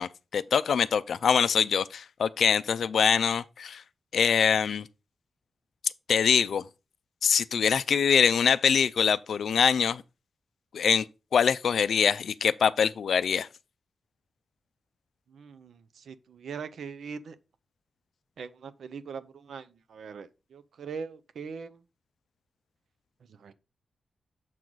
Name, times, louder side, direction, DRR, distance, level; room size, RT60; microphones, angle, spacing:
voice 1, 0.0-3.8 4.1-4.9 5.8-6.7 7.2-10.0 10.7-11.1 11.3-13.5, left 7 dB, 75° left, 0.3 m, -24 dB
voice 2, 15.3-17.4 18.4-21.8 23.3-23.5, right 6 dB, 85° right, 0.5 m, -41 dB
7.4 x 4.6 x 3.9 m
wide cardioid pair, 125°, 0 cm